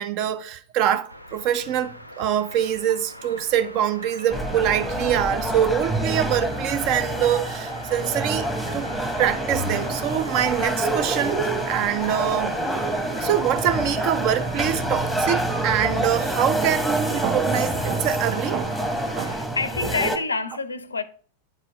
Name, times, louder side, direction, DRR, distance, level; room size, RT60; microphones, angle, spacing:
voice 1, 0.0-8.5 8.7-8.9 9.2-12.6 13.2-18.8 19.2-19.4, right 10 dB, 40° right, 0.7 m, -24 dB
Rain / Drip, 1.0-3.7 4.0-6.4 6.7-8.4 8.7-9.3 9.6-11.6 12.0-12.4 12.8-15.3 15.9-16.2 16.6-17.0 17.2-17.8 18.3-18.6 19.1-19.3, right 3 dB, 60° right, 2.4 m, -49 dB
sound 1, 1.1-19.4, equal, 90° right, 0.7 m, -40 dB
sound 2, 4.3-20.2, right 1 dB, ahead, 1.1 m, -27 dB
voice 2, 19.2-21.0, left 4 dB, 75° left, 0.5 m, -28 dB
9.3 x 4.5 x 3.0 m
figure-of-eight pair, 90°, 0 cm